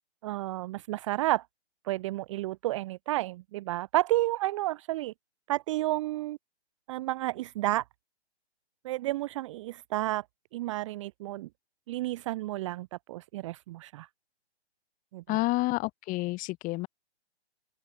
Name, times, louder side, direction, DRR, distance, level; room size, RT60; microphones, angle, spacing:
voice 1, 0.2-1.5 1.8-5.1 5.5-6.4 6.9-7.8 8.8-10.2 10.5-11.5 11.9-14.1 15.1-15.4, right 17 dB, 30° right, 0.7 m, -31 dB
voice 2, 15.3-16.9, left 21 dB, 25° left, 4.5 m, -29 dB
open air
hypercardioid pair, 135°, 33 cm